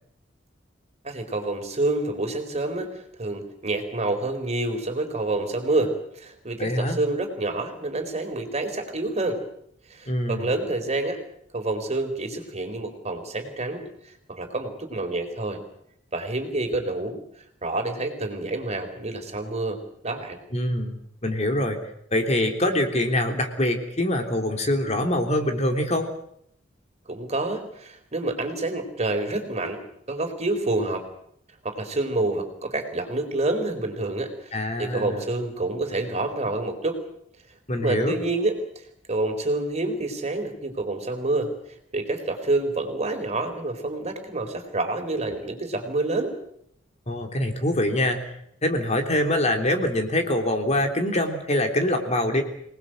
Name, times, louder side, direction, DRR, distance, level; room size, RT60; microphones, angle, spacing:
voice 1, 1.0-9.4 9.9-11.2 11.5-15.6 16.1-17.2 17.6-20.4 27.1-29.8 30.1-31.0 31.6-34.5 34.8-37.0 37.8-41.5 41.9-46.3, right 2 dB, 35° right, 5 dB, 4.3 m, -28 dB
voice 2, 6.6-7.0 10.1-10.5 20.5-21.0 21.2-21.8 22.1-26.1 34.5-35.2 37.7-38.1 47.1-48.3 48.6-52.4, left 1 dB, 35° left, 4 dB, 3.4 m, -24 dB
26.5 x 19.5 x 7.8 m, 0.72 s
head